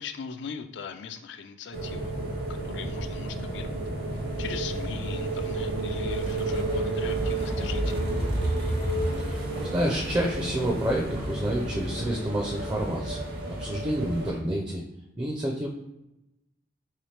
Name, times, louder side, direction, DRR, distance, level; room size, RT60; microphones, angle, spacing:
voice 1, 0.0-2.3 2.6-3.8 4.1-8.0, left 6 dB, 75° left, 8 dB, 0.4 m, -40 dB
sound 1, 1.7-14.3, right 1 dB, 60° right, 0.8 m, -30 dB
voice 2, 9.7-14.8 15.2-15.7, right 1 dB, 20° right, 0 dB, 0.4 m, -29 dB
3.4 x 2.8 x 3.2 m, 0.92 s
head